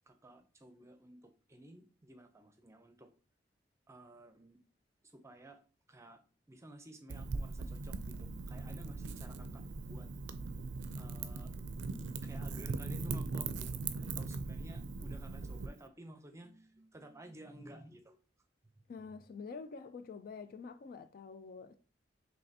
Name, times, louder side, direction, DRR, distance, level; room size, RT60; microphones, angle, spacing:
voice 1, 0.1-3.1 3.9-4.6 5.0-5.6 5.9-6.2 6.5-10.1 11.0-11.9 12.2-18.2, right 1 dB, 15° right, 0.6 m, -54 dB
Wind / Fire, 7.1-15.7, right 4 dB, 80° right, 0.4 m, -40 dB
voice 2, 18.9-21.8, left 5 dB, 55° left, 0.3 m, -47 dB
5.3 x 3.3 x 2.8 m
head